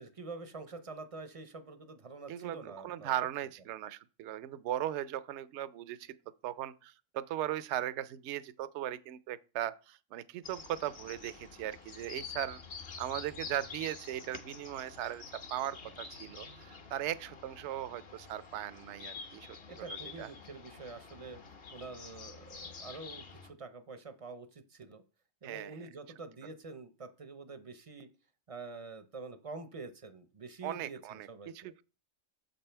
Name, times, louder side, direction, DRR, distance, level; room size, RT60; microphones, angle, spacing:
voice 1, 0.0-3.2 19.7-21.4 21.7-25.0 25.4-28.1 28.5-31.7, right 3 dB, 35° right, 0.6 m, -46 dB
voice 2, 2.3-6.1 6.4-12.6 13.0-20.3 25.4-25.9 30.6-31.3 31.5-31.8, right 12 dB, 65° right, 0.8 m, -38 dB
sound 1, 10.4-23.5, left 5 dB, 50° left, 1.1 m, -48 dB
7.4 x 5.4 x 4.4 m
omnidirectional pair, 1.4 m